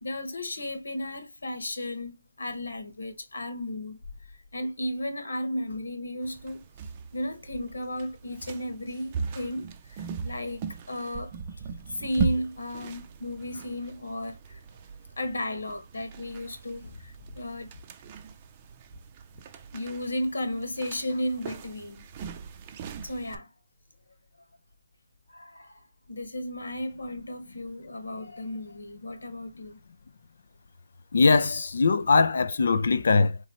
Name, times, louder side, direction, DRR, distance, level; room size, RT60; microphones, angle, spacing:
voice 1, 0.0-4.0 4.5-6.6 7.1-9.7 10.2-10.6 10.9-11.3 12.0-14.6 15.2-16.9 17.3-17.7 19.7-22.0 23.0-23.5 25.3-25.7 26.1-29.8, left 1 dB, 85° left, 1.5 m, -34 dB
sound 1, 6.2-23.4, right 5 dB, 30° right, 0.5 m, -39 dB
voice 2, 31.1-33.4, left 4 dB, 65° left, 0.4 m, -21 dB
3.9 x 3.1 x 2.9 m
hypercardioid pair, 155°, 0 cm